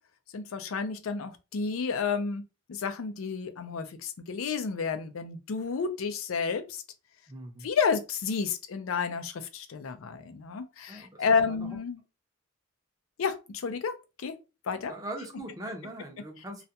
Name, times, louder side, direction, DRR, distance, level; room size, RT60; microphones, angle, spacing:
voice 1, 0.3-2.4 2.7-6.8 7.6-12.0 13.2-13.9 14.2-14.3 14.7-14.9, left 5 dB, 80° left, 0.4 m, -31 dB
voice 2, 7.3-7.7 10.9-11.8 14.9-16.7, right 1 dB, 20° right, 0.6 m, -41 dB
2.4 x 2.1 x 2.7 m
head